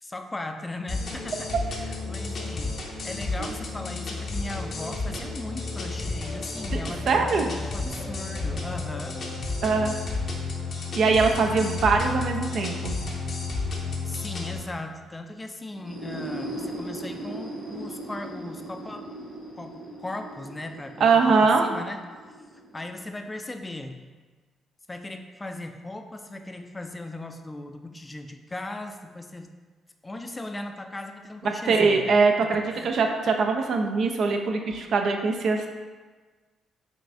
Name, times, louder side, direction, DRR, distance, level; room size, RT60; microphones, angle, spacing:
voice 1, 0.0-9.2 14.0-19.1 19.6-19.7 20.0-22.0 22.7-24.0 24.9-29.5 30.0-32.2 32.7-32.9, left 2 dB, 20° left, 5 dB, 0.4 m, -38 dB
sound 1, 0.9-14.6, left 3 dB, 55° left, 0.6 m, -32 dB
voice 2, 7.1-7.5 9.6-9.9 10.9-13.0 21.0-21.7 31.7-35.7, right 4 dB, 65° right, 3 dB, 0.4 m, -22 dB
sound 2, 15.7-23.4, right 1 dB, 85° right, 1.4 m, -38 dB
5.3 x 2.4 x 2.5 m, 1.4 s
hypercardioid pair, 50°, 0 cm